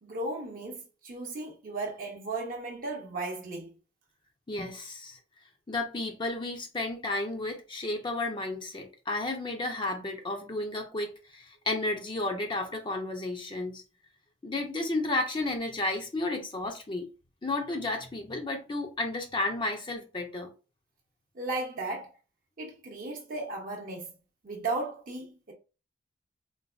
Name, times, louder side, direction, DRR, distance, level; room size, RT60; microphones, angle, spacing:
voice 1, 0.0-3.7 21.4-22.1 22.6-24.1 24.4-25.5, right 2 dB, 50° right, 0.7 m, -35 dB
voice 2, 4.5-5.2 5.7-13.8 14.4-17.1 17.4-20.5, left 2 dB, 25° left, 0.5 m, -32 dB
3.9 x 2.5 x 2.4 m
head